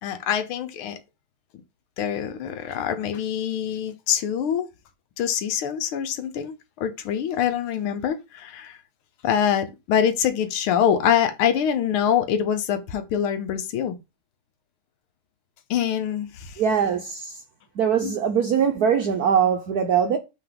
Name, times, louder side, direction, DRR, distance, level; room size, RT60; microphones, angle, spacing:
voice 1, 0.0-1.0 2.0-4.7 5.2-8.8 9.2-14.0 15.7-16.6 18.0-18.2, left 9 dB, 90° left, 1.7 m, -24 dB
voice 2, 16.6-17.4 17.8-20.2, right 7 dB, 65° right, 1.0 m, -22 dB
5.8 x 3.9 x 5.0 m
omnidirectional pair, 2.3 m